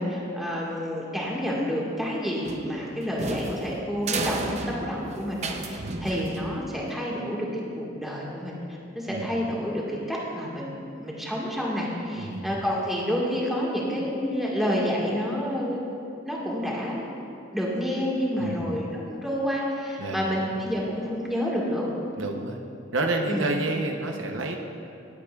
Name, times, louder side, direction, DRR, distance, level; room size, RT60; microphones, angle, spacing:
voice 1, 0.0-7.5 7.7-8.5 8.9-15.8 16.2-17.0 17.5-21.9 23.3-23.5, equal, ahead, -5 dB, 1.7 m, -29 dB
sound 1, 2.4-6.9, right 3 dB, 35° right, 0.6 m, -33 dB
voice 2, 12.1-12.5 18.4-18.7 20.0-20.4 22.2-22.6 22.9-24.6, right 2 dB, 85° right, 3 dB, 0.8 m, -29 dB
18.5 x 8.3 x 2.4 m, 2.7 s
head